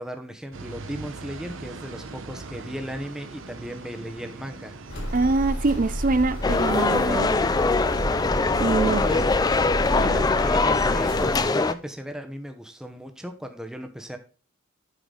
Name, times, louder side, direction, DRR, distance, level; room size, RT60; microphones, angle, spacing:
voice 1, 0.0-4.8 9.0-9.2 9.9-14.2, equal, 5° right, 0.9 m, -36 dB
sound 1, 0.5-11.8, right 3 dB, 65° right, 0.8 m, -42 dB
sound 2, 4.9-11.4, equal, 55° left, 3.3 m, -30 dB
voice 2, 5.1-7.3 8.6-9.0 9.9-10.2, right 3 dB, 40° right, 0.5 m, -24 dB
sound 3, 6.4-11.7, left 3 dB, 20° left, 0.3 m, -22 dB
8.1 x 5.9 x 3.8 m
head